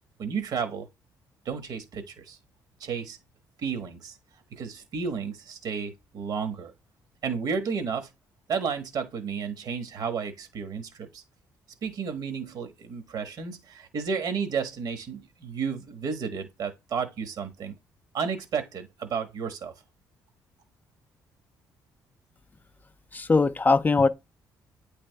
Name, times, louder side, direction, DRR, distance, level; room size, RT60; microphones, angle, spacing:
voice 1, 0.2-0.9 1.4-2.4 2.8-3.2 3.6-4.2 4.5-6.7 7.2-8.1 8.5-11.2 11.8-17.7 18.1-19.7, right 6 dB, 65° right, 1.2 m, -32 dB
voice 2, 23.1-24.1, left 3 dB, 25° left, 0.3 m, -21 dB
8.6 x 3.3 x 3.3 m
cardioid pair, 85°, 7 cm